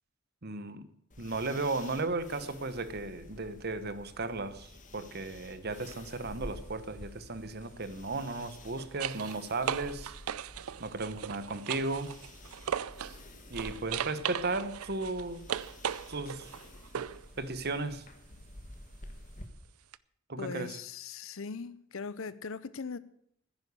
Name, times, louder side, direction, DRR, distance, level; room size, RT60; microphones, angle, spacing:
voice 1, 0.4-0.9 1.2-10.1 10.8-12.1 13.5-15.4 16.1-16.5 17.4-18.0 20.3-20.8, right 3 dB, 50° right, 1.1 m, -35 dB
sound 1, 1.1-19.5, left 1 dB, 35° left, 1.6 m, -50 dB
sound 2, 5.7-6.0 8.3-13.2 13.5-17.3 19.9-20.0, right 9 dB, 85° right, 0.5 m, -38 dB
voice 2, 20.4-23.0, left 5 dB, 65° left, 0.7 m, -40 dB
10.5 x 10.0 x 8.1 m
head